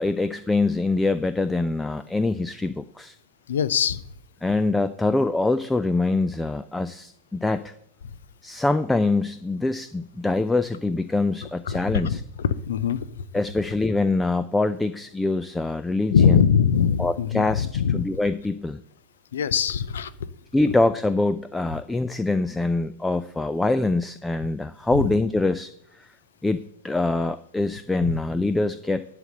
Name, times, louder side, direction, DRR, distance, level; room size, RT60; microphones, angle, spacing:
voice 1, 0.0-3.1 4.4-7.7 8.4-12.2 13.3-16.4 17.0-18.8 20.5-25.7 26.0-26.1 26.4-29.1, left 2 dB, 5° left, 13 dB, 0.4 m, -24 dB
voice 2, 3.5-4.0 11.7-13.3 16.1-18.1 19.3-20.1 24.9-25.1 28.0-28.2, left 7 dB, 65° left, 16 dB, 0.5 m, -22 dB
11.0 x 4.1 x 7.7 m, 0.75 s
figure-of-eight pair, 90°, 0 cm